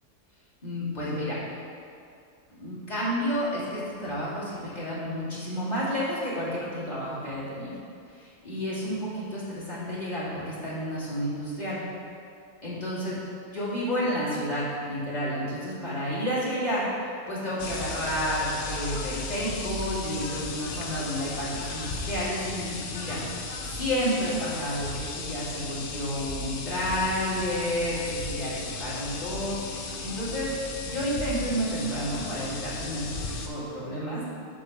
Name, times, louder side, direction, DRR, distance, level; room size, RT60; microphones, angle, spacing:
voice 1, 0.6-1.4 2.5-7.8 8.1-11.8 12.6-13.2 13.5-23.2 23.7-30.5 30.8-33.1 33.4-34.2, equal, 25° left, -9 dB, 2.2 m, -30 dB
sound 1, 17.6-33.5, left 3 dB, 65° left, 0.5 m, -35 dB
8.4 x 3.2 x 6.4 m, 2.4 s
omnidirectional pair, 1.7 m